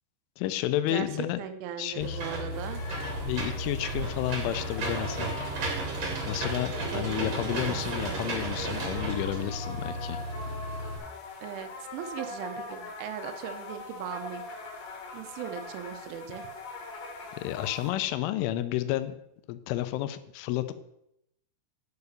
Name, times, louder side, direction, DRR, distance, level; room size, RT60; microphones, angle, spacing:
voice 1, 0.4-1.4 1.8-2.2 3.2-5.3 6.3-10.2 17.4-19.2 19.5-20.7, left 13 dB, 85° left, 12 dB, 3.2 m, -31 dB
voice 2, 1.4-2.8 6.9-8.3 11.4-14.4 15.1-16.5, right 10 dB, 80° right, 9 dB, 3.3 m, -39 dB
Engine / Mechanisms, 2.0-11.0, right 1 dB, 45° right, 2.5 m, -33 dB
sound 1, 2.5-17.9, left 3 dB, 55° left, 2.9 m, -43 dB
9.6 x 7.0 x 6.6 m, 0.81 s
omnidirectional pair, 5.5 m